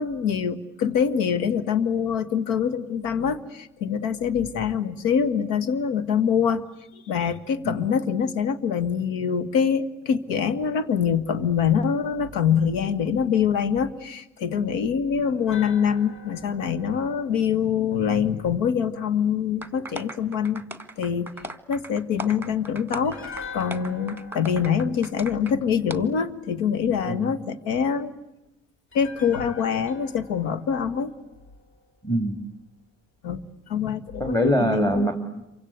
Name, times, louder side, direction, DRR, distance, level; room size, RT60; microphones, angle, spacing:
voice 1, 0.0-6.6 7.1-20.6 21.0-21.3 21.7-23.2 23.5-28.1 28.9-31.1 33.2-33.4 33.7-35.1, left 7 dB, 70° left, 14 dB, 1.6 m, -24 dB
sound 1, 15.5-18.6 23.0-26.3 28.9-32.1 32.4-32.5, left 5 dB, 35° left, 4.9 m, -44 dB
sound 2, 19.6-25.5 25.9-26.0, right 1 dB, 5° right, 1.8 m, -38 dB
voice 2, 32.0-32.4 34.2-35.4, equal, 10° left, 6 dB, 2.5 m, -24 dB
28.0 x 25.0 x 8.2 m, 0.93 s
hypercardioid pair, 60°, 35 cm